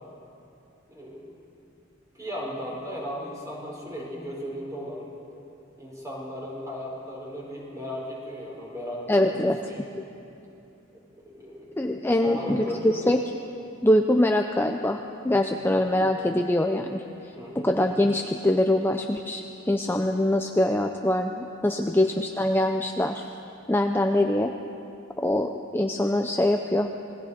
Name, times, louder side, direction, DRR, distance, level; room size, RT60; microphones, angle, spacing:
voice 1, 0.9-1.2 2.1-5.1 5.8-9.9 10.9-11.7 12.2-13.0 15.5-15.9 17.4-17.7, equal, 15° right, -4 dB, 5.2 m, -36 dB
voice 2, 9.1-9.6 11.8-13.2 13.8-17.0 17.6-23.2 23.7-24.5 25.2-26.9, left 1 dB, 10° left, 4 dB, 0.6 m, -23 dB
27.5 x 20.0 x 5.1 m, 2.8 s
head